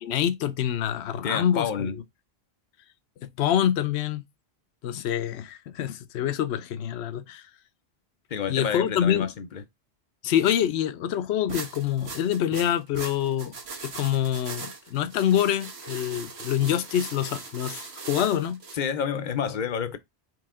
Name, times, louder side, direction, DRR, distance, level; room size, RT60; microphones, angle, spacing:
voice 1, 0.0-1.9 3.2-4.2 4.8-7.4 8.5-9.3 10.2-13.5 13.8-18.6, left 10 dB, 85° left, 0.9 m, -26 dB
voice 2, 1.1-2.0 8.3-9.6 18.7-20.0, left 7 dB, 55° left, 0.7 m, -29 dB
sound 1, 11.5-18.8, right 4 dB, 75° right, 1.3 m, -39 dB
4.8 x 3.0 x 3.6 m
omnidirectional pair, 1.1 m